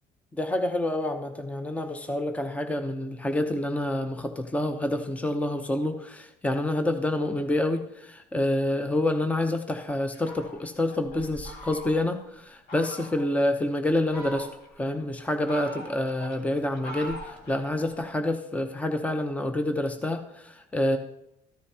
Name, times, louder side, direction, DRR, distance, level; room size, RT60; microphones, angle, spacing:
voice 1, 0.3-14.5 14.8-21.0, left 1 dB, 10° left, 6 dB, 0.8 m, -28 dB
Fowl, 10.1-12.2 12.7-13.3 13.9-14.8 15.2-18.0, equal, 65° left, 2.2 m, -42 dB
13.5 x 9.4 x 2.9 m, 0.82 s
cardioid pair, 110°, 17 cm